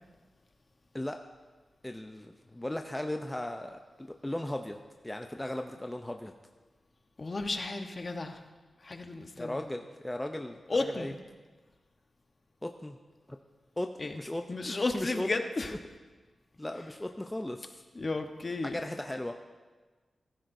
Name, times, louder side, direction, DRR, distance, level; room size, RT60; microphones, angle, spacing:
voice 1, 1.8-4.8 5.0-6.3 9.4-11.1 12.6-13.0 13.8-15.3 16.6-17.8 18.6-19.3, left 1 dB, 10° left, 4 dB, 0.5 m, -37 dB
voice 2, 7.2-8.4 8.8-9.6 10.7-11.2 14.0-14.2 14.5-15.7 17.9-18.8, left 3 dB, 40° left, 6 dB, 1.0 m, -33 dB
16.0 x 14.5 x 2.6 m, 1.3 s
wide cardioid pair, 100°, 0 cm